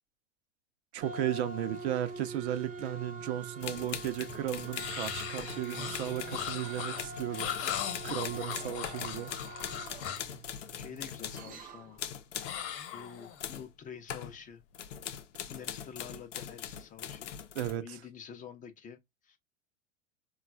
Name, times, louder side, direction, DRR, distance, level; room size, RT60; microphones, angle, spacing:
voice 1, 0.9-9.4 17.5-18.0, right 12 dB, 60° right, 0.6 m, -35 dB
sound 1, 1.0-12.0, right 3 dB, 25° right, 0.6 m, -44 dB
sound 2, 3.6-11.6 12.0-12.6 13.4-13.7 14.1-14.4 14.7-17.8, left 9 dB, 75° left, 0.6 m, -42 dB
sound 3, 4.7-10.4 12.4-13.6, left 10 dB, 40° left, 1.0 m, -39 dB
voice 2, 10.7-12.0 12.9-14.6 15.0-15.2 15.5-17.4 17.7-19.4, left 7 dB, 20° left, 0.5 m, -48 dB
3.8 x 2.4 x 2.2 m
hypercardioid pair, 95°, 37 cm